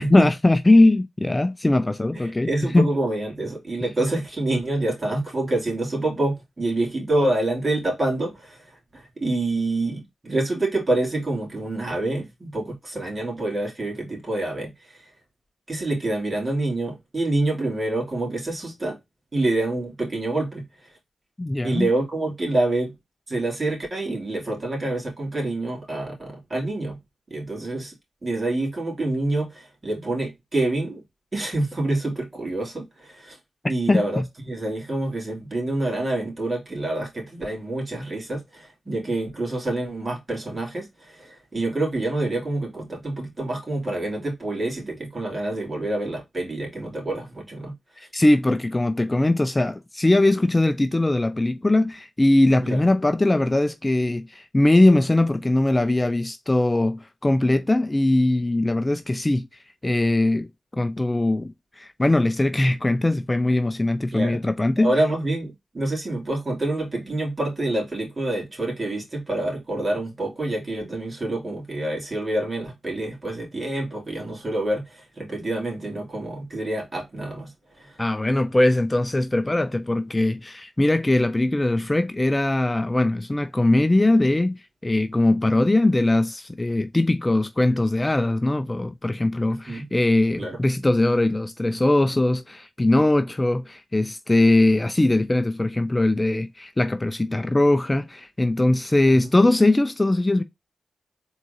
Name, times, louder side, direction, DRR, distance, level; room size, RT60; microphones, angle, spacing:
voice 1, 0.0-2.9 21.4-21.9 33.9-34.2 48.1-59.5 59.8-60.5 60.7-64.9 78.0-100.4, left 2 dB, 20° left, 0.4 m, -20 dB
voice 2, 2.1-8.6 8.9-15.0 15.7-19.0 19.3-20.6 21.6-22.9 23.3-27.0 27.3-27.9 28.2-31.0 31.3-33.4 33.7-47.7 52.6-52.8 64.1-64.4 64.8-78.0 89.5-89.9 90.4-90.6 99.1-99.3, right 2 dB, 40° right, 2.7 m, -27 dB
4.4 x 3.7 x 2.7 m
cardioid pair, 60°, 0 cm